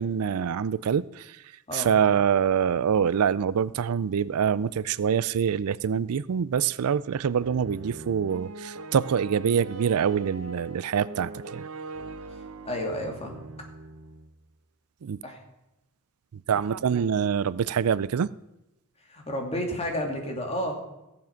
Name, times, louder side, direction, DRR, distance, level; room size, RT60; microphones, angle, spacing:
voice 1, 0.0-1.4 1.7-11.7 15.0-15.2 16.5-18.3, right 7 dB, 90° right, 0.4 m, -25 dB
sound 1, 7.4-14.3, right 4 dB, 70° right, 0.8 m, -41 dB
voice 2, 12.6-13.5 15.2-15.4 19.1-20.8, equal, 30° left, 2.6 m, -31 dB
16.0 x 7.3 x 5.9 m
head